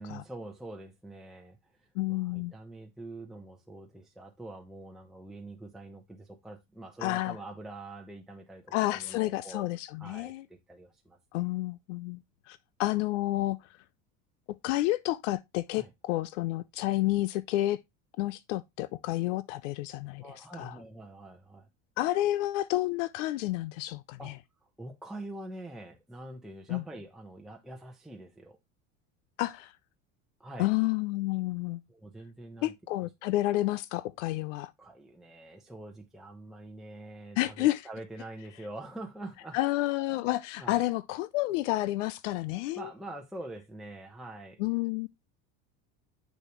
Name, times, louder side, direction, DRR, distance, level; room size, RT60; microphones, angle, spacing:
voice 1, 0.0-9.7 10.0-11.4 15.7-15.9 20.2-21.7 24.2-24.4 24.6-28.6 30.4-30.7 31.9-33.3 34.8-39.6 40.1-40.3 40.6-40.8 42.8-44.6, right 2 dB, ahead, 0.9 m, -45 dB
voice 2, 2.0-2.5 7.0-7.4 8.7-10.4 11.3-12.2 12.5-13.6 14.6-17.8 18.2-20.8 22.0-24.3 26.7-26.8 29.4-29.7 30.6-31.8 32.6-34.7 37.4-37.8 39.5-42.9 44.6-45.1, left 17 dB, 85° left, 0.5 m, -30 dB
6.4 x 6.4 x 3.0 m
supercardioid pair, 105°, 36 cm